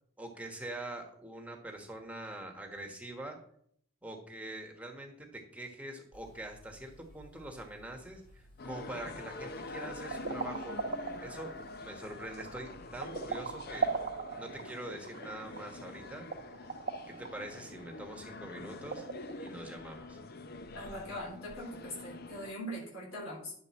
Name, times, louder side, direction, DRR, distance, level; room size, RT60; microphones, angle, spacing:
voice 1, 0.2-3.4 4.0-10.8 11.2-13.9 14.3-16.3 17.1-19.1 19.4-20.2, right 1 dB, 5° right, 2 dB, 1.2 m, -44 dB
sound 1, 6.1-14.0, left 1 dB, 65° left, 3.3 m, -59 dB
sound 2, 8.6-22.5, left 2 dB, 50° left, 0.5 m, -46 dB
sound 3, 10.0-19.5, right 4 dB, 45° right, 0.9 m, -39 dB
voice 2, 20.7-23.5, equal, 90° left, -3 dB, 3.5 m, -41 dB
11.0 x 6.8 x 4.2 m, 0.67 s
head